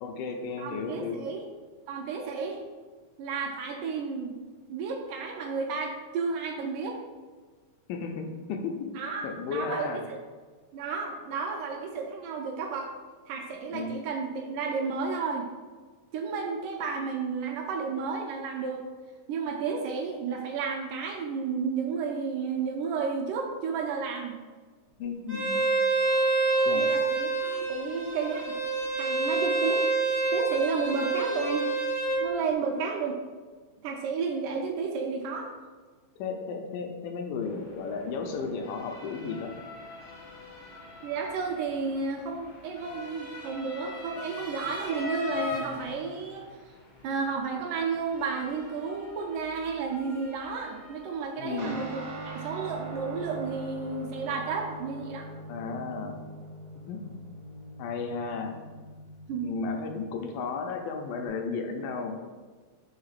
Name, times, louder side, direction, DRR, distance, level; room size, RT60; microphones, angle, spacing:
voice 1, 0.0-1.2 7.9-8.7 9.2-10.0 13.7-13.9 25.0-25.6 26.6-26.8 36.2-39.5 51.4-51.7 55.5-56.2 56.8-57.0 57.8-58.6 59.4-62.2, left 4 dB, 90° left, 4 dB, 2.3 m, -34 dB
voice 2, 0.6-1.4 1.9-2.6 3.2-4.4 4.7-7.0 9.0-10.2 10.7-12.9 13.3-15.5 16.1-18.8 19.3-24.3 26.7-28.5 29.0-31.7 32.2-33.2 33.8-35.5 41.0-46.5 47.0-55.3 59.3-59.5, right 5 dB, 80° right, 1 dB, 2.1 m, -32 dB
Bowed string instrument, 25.3-32.2, right 3 dB, 20° right, 0.6 m, -27 dB
Motor vehicle (road) / Siren, 37.4-54.8, left 3 dB, 65° left, 0.7 m, -43 dB
Guitar, 51.6-61.3, right 2 dB, 60° right, 1.3 m, -43 dB
5.7 x 3.2 x 5.7 m, 1.4 s
omnidirectional pair, 3.9 m